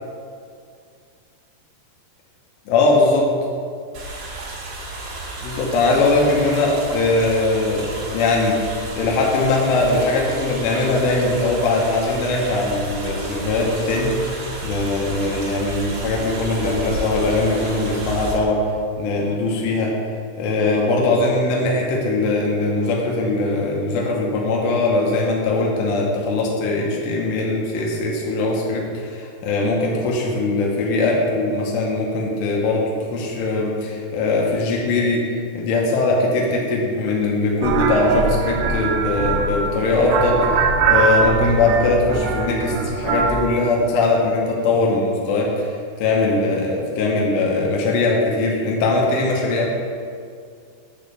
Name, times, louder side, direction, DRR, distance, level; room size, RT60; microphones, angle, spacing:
voice 1, 2.7-3.3 5.4-14.2 14.6-18.6 19.0-19.9 20.4-35.3 35.5-49.7, left 2 dB, 85° left, -2 dB, 3.1 m, -20 dB
sound 1, 3.9-18.3, right 2 dB, 65° right, 3.6 m, -32 dB
sound 2, 37.6-43.5, right 5 dB, 85° right, 2.1 m, -21 dB
8.8 x 3.8 x 6.6 m, 2.3 s
omnidirectional pair, 4.8 m